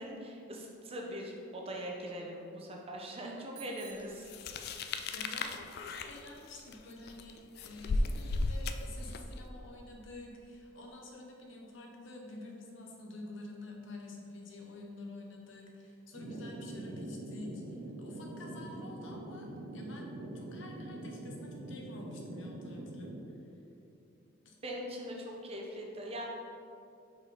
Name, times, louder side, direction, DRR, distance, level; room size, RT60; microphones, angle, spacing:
voice 1, 0.0-4.3 24.6-26.3, equal, 30° right, -1 dB, 0.7 m, -41 dB
Bicycle bell, 3.5-5.1, right 7 dB, 75° right, 1.1 m, -54 dB
sound 1, 4.3-9.4, left 2 dB, 55° left, 0.3 m, -35 dB
voice 2, 5.1-23.2 24.4-24.6, left 2 dB, 75° left, 0 dB, 0.9 m, -49 dB
sound 2, 16.1-23.2, right 1 dB, 90° right, 0.8 m, -44 dB
5.1 x 4.2 x 4.9 m, 2.7 s
head